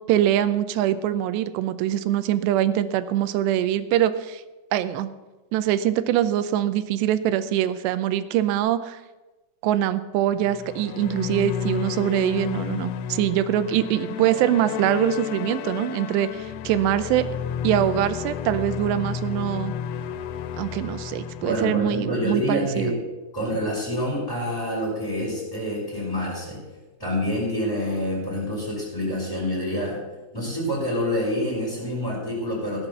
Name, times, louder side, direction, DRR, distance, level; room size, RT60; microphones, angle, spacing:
voice 1, 0.1-4.4 4.7-5.1 5.5-9.0 9.6-17.3 17.6-19.7 20.6-22.9, right 11 dB, 85° right, 13 dB, 2.8 m, -23 dB
sound 1, 10.3-22.8, left 8 dB, 85° left, 3.0 m, -32 dB
voice 2, 21.4-23.0 23.3-26.6 27.0-30.0 30.3-32.9, equal, 10° left, -7 dB, 4.8 m, -27 dB
16.5 x 7.4 x 6.9 m, 1.1 s
omnidirectional pair, 4.9 m